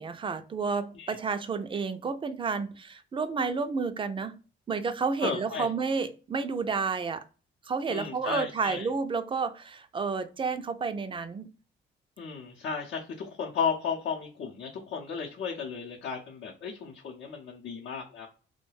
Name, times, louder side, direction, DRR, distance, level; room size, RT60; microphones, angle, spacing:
voice 1, 0.0-4.4 4.7-7.2 7.6-11.5, right 5 dB, 25° right, 0.4 m, -31 dB
voice 2, 5.2-5.7 7.9-8.9 12.2-18.3, left 6 dB, 65° left, 0.6 m, -34 dB
2.3 x 2.2 x 3.2 m
cardioid pair, 90°, 20 cm